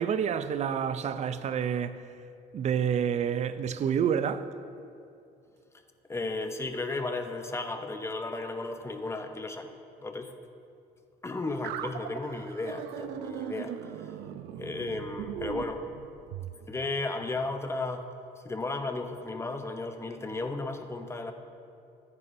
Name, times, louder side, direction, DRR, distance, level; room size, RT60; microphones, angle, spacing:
voice 1, 0.0-2.0 2.5-4.5, right 8 dB, 45° right, 0.4 m, -28 dB
voice 2, 6.1-9.7 10.0-10.3 11.2-13.7 14.6-15.8 16.7-18.1 18.4-21.3, left 3 dB, 15° left, 0.7 m, -34 dB
sound 1, 11.6-16.6, right 10 dB, 90° right, 0.5 m, -39 dB
14.0 x 9.5 x 2.6 m
cardioid pair, 110°, 17 cm